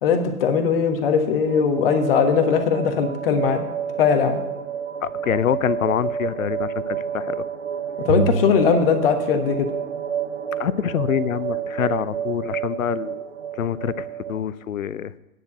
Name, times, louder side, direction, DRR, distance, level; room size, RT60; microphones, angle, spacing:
voice 1, 0.0-3.7 4.0-4.4 8.0-9.7, left 6 dB, 40° left, 6 dB, 1.4 m, -20 dB
sound 1, 1.5-14.4, right 8 dB, 50° right, 1.0 m, -30 dB
voice 2, 5.0-7.5 10.6-13.2 13.6-15.1, left 9 dB, 65° left, 18 dB, 0.6 m, -25 dB
sound 2, 8.1-9.9, right 4 dB, 35° right, 0.5 m, -27 dB
9.7 x 6.8 x 7.8 m, 1.0 s
figure-of-eight pair, 120°, 45 cm